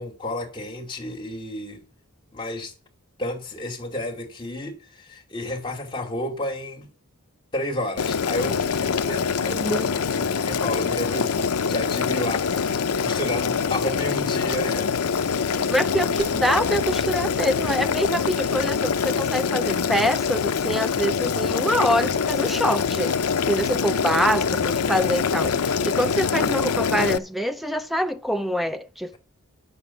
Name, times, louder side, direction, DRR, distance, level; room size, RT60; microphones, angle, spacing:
voice 1, 0.0-1.8 2.3-2.7 3.2-6.9 7.5-9.7 10.0-15.1, left 1 dB, 20° left, 2.5 m, -31 dB
Boiling, 8.0-27.2, left 6 dB, 80° left, 0.6 m, -24 dB
voice 2, 9.6-10.0 15.5-23.2 23.5-29.2, equal, ahead, 0.6 m, -25 dB
sound 1, 16.2-20.6, left 1 dB, 75° right, 4.1 m, -44 dB
9.7 x 6.8 x 7.1 m
head